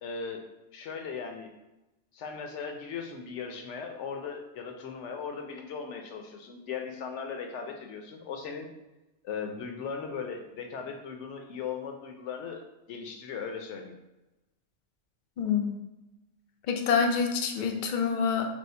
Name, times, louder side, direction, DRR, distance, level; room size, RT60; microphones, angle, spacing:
voice 1, 0.0-0.4 0.7-1.5 2.1-8.7 9.2-12.6 12.9-13.9, left 6 dB, 80° left, 4 dB, 0.9 m, -38 dB
voice 2, 15.4-15.8 16.7-18.5, left 6 dB, 55° left, 4 dB, 0.5 m, -26 dB
3.0 x 2.7 x 4.3 m, 0.99 s
omnidirectional pair, 1.2 m